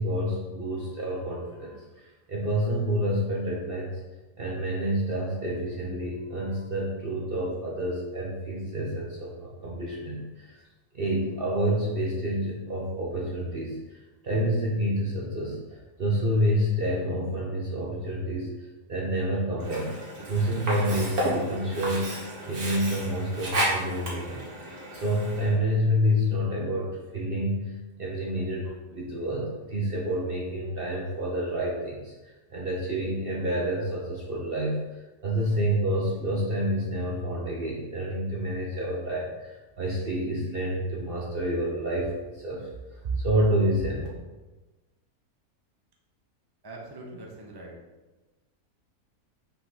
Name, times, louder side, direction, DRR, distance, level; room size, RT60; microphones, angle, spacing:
voice 1, 0.0-3.9 4.4-10.6 10.9-19.9 20.3-27.7 28.0-44.1, equal, 45° right, -4 dB, 1.0 m, -28 dB
Sink (filling or washing), 19.6-25.6, right 1 dB, 80° right, 2.0 m, -32 dB
voice 2, 46.6-47.8, right 2 dB, 20° right, -1 dB, 0.9 m, -42 dB
5.7 x 3.8 x 5.8 m, 1.2 s
omnidirectional pair, 1.6 m